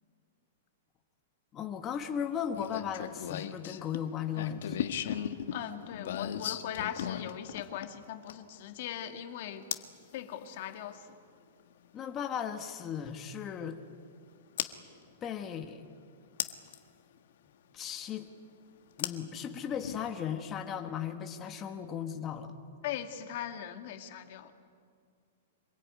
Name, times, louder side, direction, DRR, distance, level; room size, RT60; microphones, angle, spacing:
voice 1, 1.5-4.8 11.9-13.8 15.2-15.8 17.7-18.3 19.0-22.5, left 8 dB, 20° left, 5 dB, 1.4 m, -36 dB
sound 1, 2.6-8.6 9.7-10.0 11.8-11.9 14.6-14.7 16.4-16.8 19.0-20.0, left 10 dB, 65° left, 1.6 m, -36 dB
voice 2, 5.5-9.6 10.1-11.0 22.8-24.5, left 10 dB, 45° left, 6 dB, 2.0 m, -39 dB
25.5 x 22.5 x 9.5 m, 2.2 s
supercardioid pair, 170°, 0 cm